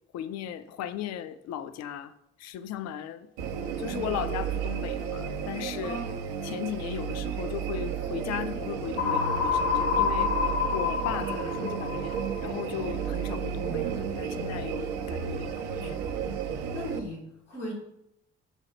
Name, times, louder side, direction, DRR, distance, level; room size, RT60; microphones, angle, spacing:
voice 1, 0.1-2.1 2.4-3.3 3.8-6.0 6.4-10.3 10.7-16.0, left 10 dB, 50° left, 0.4 m, -36 dB
sound 1, 3.4-17.0, right 7 dB, 60° right, 0.6 m, -32 dB
voice 2, 5.8-6.2 11.2-11.7 16.7-17.7, equal, 85° left, 1.0 m, -38 dB
sound 2, 9.0-12.8, left 6 dB, 65° left, 0.9 m, -28 dB
4.1 x 2.3 x 4.3 m
figure-of-eight pair, 40°, 35 cm